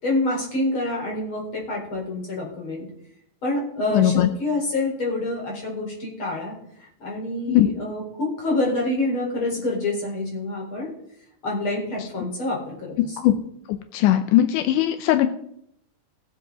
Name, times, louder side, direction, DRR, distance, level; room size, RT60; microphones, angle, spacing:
voice 1, 0.0-2.9 3.4-10.9 11.4-13.2, left 2 dB, 35° left, -2 dB, 4.7 m, -27 dB
voice 2, 3.9-4.3 7.5-7.7 13.2-13.3 13.9-15.3, left 13 dB, 80° left, 8 dB, 1.9 m, -18 dB
20.5 x 7.6 x 3.9 m, 0.73 s
omnidirectional pair, 4.3 m